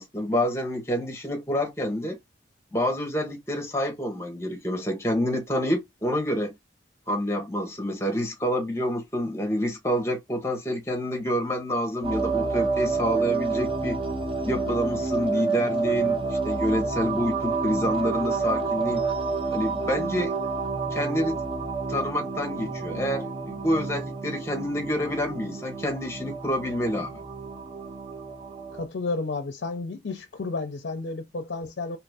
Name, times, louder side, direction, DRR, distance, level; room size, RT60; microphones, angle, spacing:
voice 1, 0.0-2.2 2.7-6.5 7.1-14.0 14.4-19.0 19.5-20.3 20.9-21.4 21.9-27.1, equal, 15° left, 0.8 m, -28 dB
sound 1, 12.0-28.9, right 4 dB, 30° right, 0.5 m, -29 dB
voice 2, 28.7-32.0, left 3 dB, 60° left, 0.5 m, -32 dB
2.9 x 2.5 x 3.3 m
head